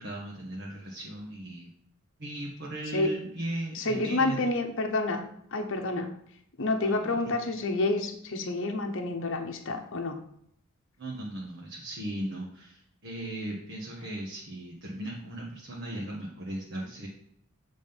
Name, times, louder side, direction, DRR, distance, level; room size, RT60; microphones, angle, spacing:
voice 1, 0.0-1.7 2.2-4.4 6.8-7.6 11.0-17.1, right 1 dB, 60° right, -4 dB, 1.3 m, -37 dB
voice 2, 3.7-5.2 5.5-6.1 6.6-10.2, left 2 dB, 65° left, 4 dB, 0.9 m, -29 dB
7.3 x 3.8 x 5.2 m, 0.70 s
head